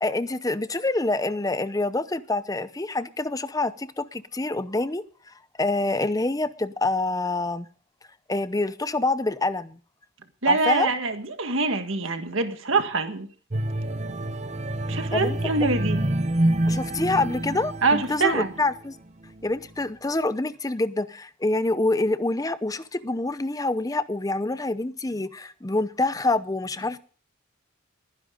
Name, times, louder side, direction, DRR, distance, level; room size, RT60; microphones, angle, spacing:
voice 1, 0.0-5.0 5.6-7.7 8.3-9.8 10.5-10.9 15.1-15.4 16.7-19.0 19.4-27.0, left 2 dB, 15° left, 0.6 m, -26 dB
voice 2, 10.4-13.3 14.9-16.0 17.8-18.5, right 3 dB, 70° right, 1.7 m, -24 dB
sound 1, 13.5-18.8 19.2-19.4, right 1 dB, 30° right, 0.8 m, -27 dB
21.5 x 10.5 x 3.8 m
head